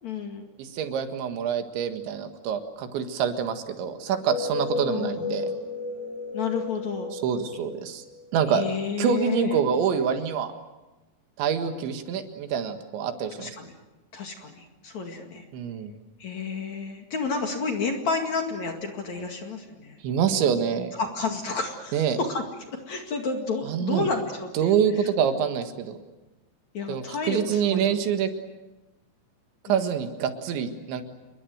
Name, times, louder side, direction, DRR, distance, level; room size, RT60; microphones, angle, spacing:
voice 1, 0.0-0.5 4.9-5.6 6.3-7.1 8.5-9.6 13.4-13.7 14.1-15.4 16.2-20.0 21.0-22.4 22.7-25.1 26.7-27.9 29.6-29.9, left 4 dB, 50° left, 3 dB, 2.8 m, -31 dB
voice 2, 0.6-5.5 7.1-8.0 8.3-8.6 9.0-10.5 11.4-13.5 15.5-15.9 20.0-20.9 21.9-22.2 23.7-24.1 24.5-26.0 26.9-28.3 29.7-31.0, right 8 dB, 80° right, 7 dB, 4.0 m, -26 dB
sound 1, 4.1-8.7, left 3 dB, 25° right, 2.4 m, -33 dB
28.5 x 22.0 x 8.0 m, 1.1 s
omnidirectional pair, 5.2 m